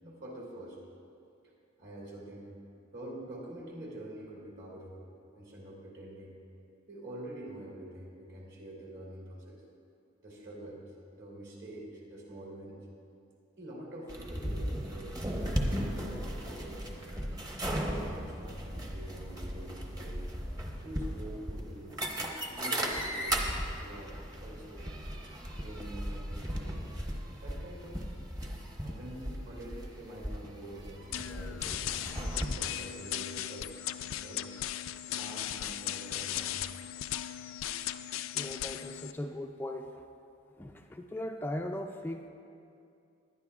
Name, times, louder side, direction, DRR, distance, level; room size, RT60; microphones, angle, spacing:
voice 1, 0.0-0.8 1.8-2.5 2.9-5.1 5.3-6.3 6.9-9.6 10.2-12.8 13.6-17.0 17.7-20.2 20.8-23.4 23.7-24.9 25.5-28.0 28.8-31.9 32.5-34.5 35.1-36.6, right 1 dB, 60° right, -3 dB, 3.2 m, -46 dB
sound 1, 14.1-32.5, equal, 20° right, 0.9 m, -36 dB
sound 2, 31.1-39.1, left 12 dB, 90° left, 0.4 m, -37 dB
voice 2, 38.3-40.0 40.6-42.3, left 1 dB, 10° left, 3 dB, 0.3 m, -39 dB
20.0 x 11.5 x 2.4 m, 2.5 s
head